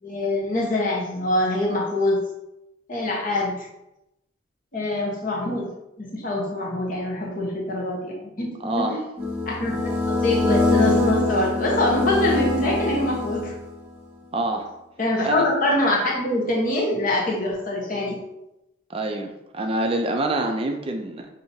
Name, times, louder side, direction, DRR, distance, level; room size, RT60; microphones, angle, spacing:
voice 1, 0.0-2.2 2.9-3.7 4.7-5.7 6.0-9.0 9.5-9.8 10.0-13.5 15.0-18.2, left 1 dB, 45° left, -3 dB, 1.1 m, -24 dB
voice 2, 8.6-9.0 14.3-14.7 15.2-15.5 18.9-21.3, right 2 dB, 30° right, 4 dB, 0.4 m, -26 dB
sound 1, 9.2-13.8, left 2 dB, 10° right, 0.9 m, -24 dB
6.0 x 2.7 x 2.7 m, 0.90 s
head